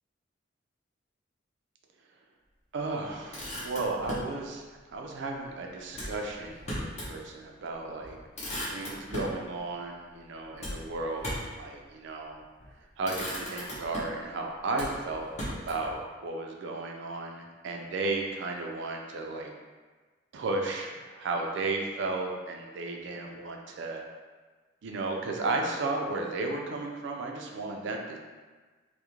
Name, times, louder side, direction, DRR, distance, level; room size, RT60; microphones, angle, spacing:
voice 1, 2.7-4.6 4.9-8.2 8.7-11.3 11.6-12.4 13.0-19.5 20.3-24.0 24.8-28.2, right 3 dB, 65° right, 1 dB, 0.4 m, -34 dB
Motor vehicle (road), 3.1-4.3 5.9-7.2 7.6-7.7 8.0-9.4 10.6-11.6 12.4-12.7 13.0-14.3 14.7-15.9, equal, 35° left, 0.7 m, -37 dB
2.4 x 2.1 x 2.9 m, 1.4 s
head